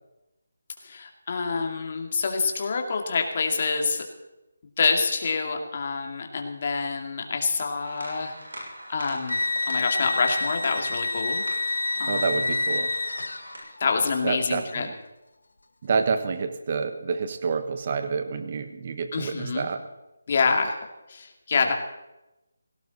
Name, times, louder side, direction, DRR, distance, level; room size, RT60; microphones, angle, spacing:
voice 1, 0.8-4.0 4.8-12.6 13.8-14.9 19.1-19.7 20.3-20.8 21.1-21.7, left 4 dB, 40° left, 3 dB, 2.3 m, -27 dB
sound 1, 7.8-13.6, right 1 dB, 85° right, 7.0 m, -42 dB
sound 2, 9.3-13.8, left 2 dB, 85° left, 1.2 m, -28 dB
voice 2, 12.1-12.9 14.2-14.9 15.8-19.8, right 5 dB, 40° right, 9 dB, 1.4 m, -28 dB
17.5 x 17.0 x 4.2 m, 1.0 s
figure-of-eight pair, 165°, 0 cm